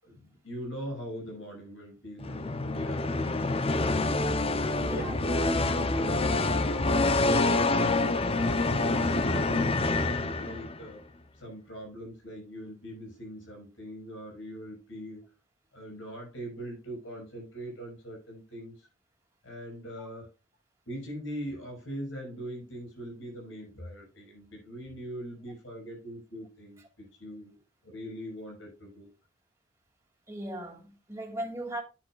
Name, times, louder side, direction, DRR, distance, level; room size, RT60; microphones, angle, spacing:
voice 1, 0.0-4.3 4.6-6.6 7.1-11.0 11.3-15.3 15.7-18.9 19.4-20.3 20.9-27.5 27.8-29.1, equal, 80° left, 6.3 m, -41 dB
sound 1, 2.2-10.9, left 2 dB, 30° left, 0.7 m, -27 dB
voice 2, 30.3-31.8, right 1 dB, 15° right, 2.6 m, -38 dB
10.5 x 9.7 x 2.4 m
head